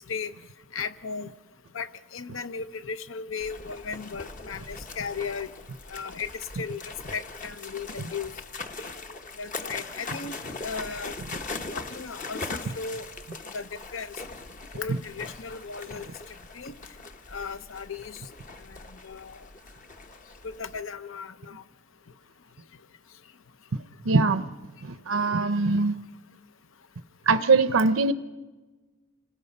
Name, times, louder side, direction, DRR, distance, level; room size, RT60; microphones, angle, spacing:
voice 1, 0.7-1.3 1.7-5.5 5.9-6.3 6.5-6.8 7.1-8.3 9.4-10.3 10.6-11.1 11.7-13.1 13.5-14.1 14.7-16.1 16.5-16.7 17.3-18.2 19.0-19.4 20.4-21.6, left 5 dB, 70° left, 11 dB, 0.8 m, -36 dB
sound 1, 3.4-20.8, left 3 dB, 40° left, 1.0 m, -40 dB
voice 2, 24.0-24.5 24.8-25.9 27.3-28.1, right 3 dB, 75° right, 11 dB, 0.7 m, -22 dB
27.5 x 19.5 x 5.4 m, 1.2 s
head